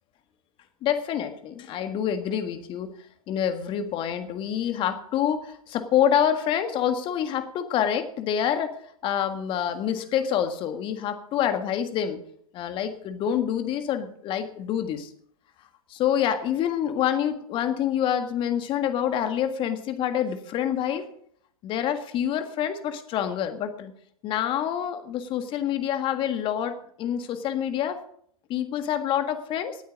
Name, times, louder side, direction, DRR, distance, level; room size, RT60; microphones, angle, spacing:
voice 1, 0.8-2.9 3.3-8.7 9.0-12.2 12.5-15.1 15.9-21.1 21.6-23.9 24.2-28.0 28.5-29.8, left 9 dB, 25° left, 9 dB, 1.7 m, -27 dB
18.0 x 9.1 x 5.1 m, 0.65 s
figure-of-eight pair, 110°, 19 cm